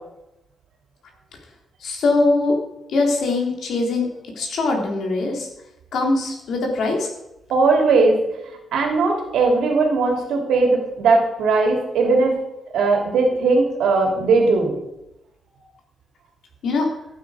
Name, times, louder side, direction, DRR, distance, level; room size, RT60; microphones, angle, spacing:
voice 1, 1.8-2.6 2.9-4.1 4.4-5.5 5.9-7.1 16.6-16.9, left 3 dB, 65° left, 1 dB, 3.3 m, -21 dB
voice 2, 7.5-8.2 8.7-12.3 12.7-14.7, right 3 dB, 85° right, 2 dB, 2.9 m, -18 dB
15.0 x 8.9 x 4.9 m, 0.88 s
cardioid pair, 135°, 0 cm